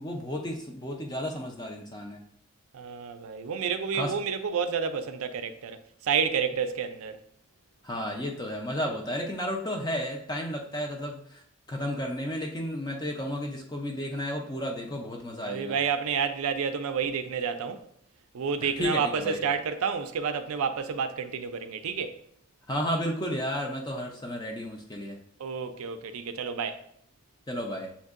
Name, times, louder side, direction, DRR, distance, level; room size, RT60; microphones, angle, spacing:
voice 1, 0.0-2.2 3.9-4.1 7.8-11.4 11.7-15.8 18.6-19.4 22.7-25.2 27.5-27.9, equal, 20° left, 0.4 m, -32 dB
voice 2, 2.7-7.2 15.4-17.8 18.3-22.2 25.4-26.8, right 6 dB, 80° right, 0.4 m, -30 dB
7.0 x 2.6 x 2.4 m
head